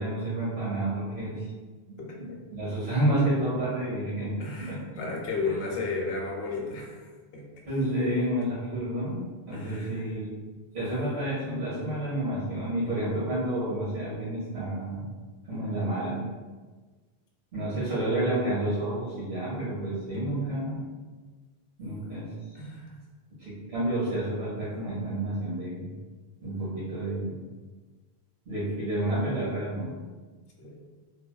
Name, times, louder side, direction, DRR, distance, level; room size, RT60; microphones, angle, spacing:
voice 1, 0.0-1.4 1.9-4.8 5.4-5.5 7.6-10.4 10.7-15.1 15.5-16.2 17.5-20.8 21.8-22.6 23.4-25.9 26.4-27.4 28.5-29.9, right 1 dB, 80° right, -10 dB, 1.2 m, -30 dB
voice 2, 2.0-2.4 4.4-7.1 7.3-7.5 9.5-10.2 17.7-17.9 20.1-20.4 22.5-23.0 30.6-30.8, left 3 dB, 70° left, -1 dB, 0.8 m, -34 dB
3.3 x 2.3 x 2.2 m, 1.3 s
omnidirectional pair, 1.1 m